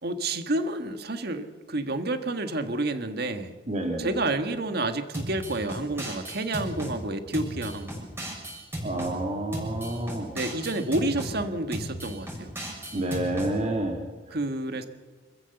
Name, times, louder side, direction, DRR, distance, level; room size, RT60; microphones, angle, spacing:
voice 1, 0.0-3.5 4.0-8.0 10.3-12.5 14.3-14.8, right 2 dB, 60° right, 8 dB, 1.6 m, -29 dB
voice 2, 3.7-4.1 8.8-10.3 12.9-14.0, right 1 dB, 40° right, 2 dB, 2.3 m, -29 dB
sound 1, 5.1-6.9 7.3-9.1 9.5-11.3 11.7-13.5, right 1 dB, 15° right, 6.5 m, -35 dB
26.5 x 14.5 x 7.0 m, 1.4 s
head